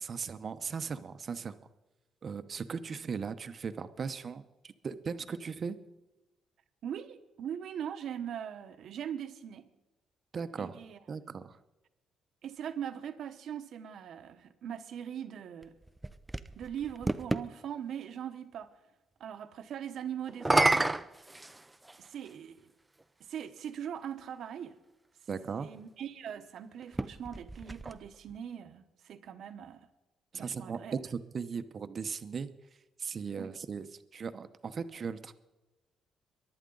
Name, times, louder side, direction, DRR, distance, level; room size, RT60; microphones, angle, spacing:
voice 1, 0.0-1.6 2.2-5.8 10.3-10.8 11.1-11.6 25.3-25.7 30.3-32.5 33.0-35.3, right 6 dB, 45° right, 0.9 m, -38 dB
voice 2, 6.8-9.7 10.6-11.0 12.4-15.7 16.5-18.7 19.2-21.0 21.3-21.5 22.0-22.7 23.2-24.8 25.6-29.9 30.3-31.0 33.4-33.5, right 9 dB, 70° right, 1.1 m, -41 dB
sound 1, 15.6-17.5 20.3-22.1 23.0-23.1 26.8-28.4, right 2 dB, 15° right, 0.6 m, -30 dB
23.0 x 11.0 x 3.9 m
cardioid pair, 90°, 0 cm